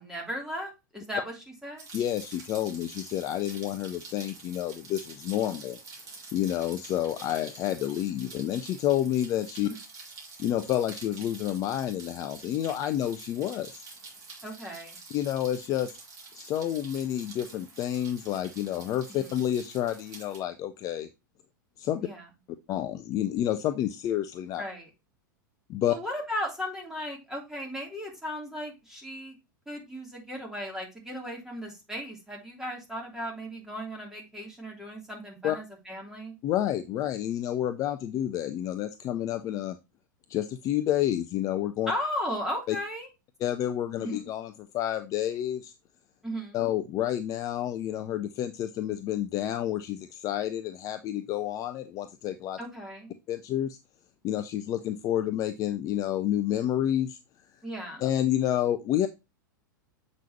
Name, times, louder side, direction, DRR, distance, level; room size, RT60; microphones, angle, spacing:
voice 1, 0.0-1.9 9.6-9.7 14.4-15.0 19.1-19.3 22.0-22.3 24.6-24.9 25.9-29.4 29.7-36.3 41.9-43.1 44.0-44.2 46.2-46.6 52.6-53.1 57.6-58.0, equal, 5° right, -1 dB, 3.1 m, -36 dB
Rain, 1.8-20.4, right 3 dB, 30° right, 3.1 m, -47 dB
voice 2, 1.9-5.8 6.3-9.7 10.4-13.8 15.1-15.9 16.3-21.1 21.8-22.1 22.7-24.6 25.7-25.9 35.4-35.6 36.4-39.8 40.3-41.9 42.7-42.8 43.4-45.7 46.5-52.6 53.3-53.8 54.2-57.2 58.0-59.1, left 11 dB, 30° left, 10 dB, 0.5 m, -29 dB
7.5 x 5.3 x 2.9 m, 0.24 s
figure-of-eight pair, 90°, 11 cm